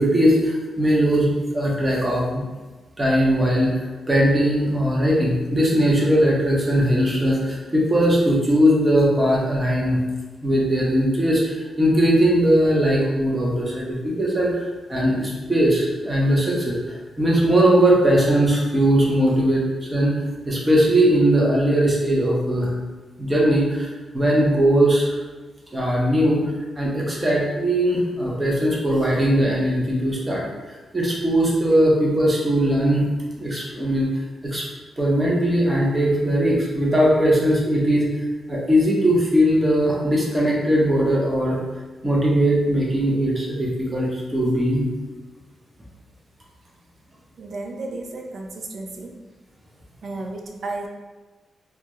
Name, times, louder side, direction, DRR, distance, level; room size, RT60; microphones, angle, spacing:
voice 1, 0.0-2.5 3.0-10.0 10.4-14.6 14.9-22.7 23.2-25.2 25.7-26.4 26.8-30.4 30.9-33.1 33.4-34.1 34.4-34.7 35.0-38.1 38.5-41.6 42.0-44.9, equal, 20° right, -4 dB, 0.7 m, -19 dB
voice 2, 47.4-49.2 50.0-50.9, right 2 dB, 65° right, 2 dB, 0.4 m, -33 dB
2.3 x 2.2 x 2.9 m, 1.3 s
cardioid pair, 85°, 0 cm